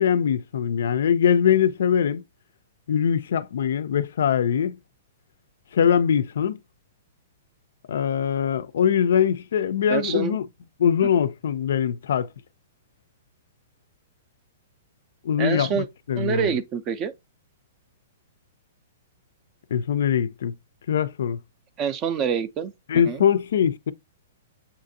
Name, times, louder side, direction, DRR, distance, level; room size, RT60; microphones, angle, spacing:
voice 1, 0.0-2.2 2.9-4.8 5.7-6.6 7.9-10.5 10.8-12.3 15.2-16.5 19.7-20.5 20.9-21.4 22.9-23.9, left 8 dB, 70° left, 0.4 m, -22 dB
voice 2, 9.9-10.4 15.4-15.9 16.2-17.1 21.8-23.2, right 7 dB, 20° right, 0.4 m, -26 dB
7.0 x 2.5 x 2.6 m
hypercardioid pair, 170°, 0 cm